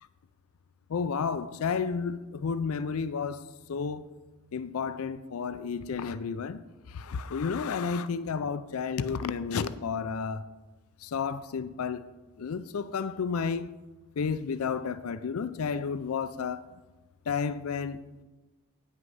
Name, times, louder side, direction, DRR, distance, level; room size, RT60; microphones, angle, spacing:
voice 1, 0.9-4.0 4.5-6.6 6.9-10.4 11.0-12.0 12.4-13.7 14.2-16.6 17.3-18.0, left 5 dB, 80° left, 0.4 m, -31 dB
9.2 x 6.2 x 5.5 m
head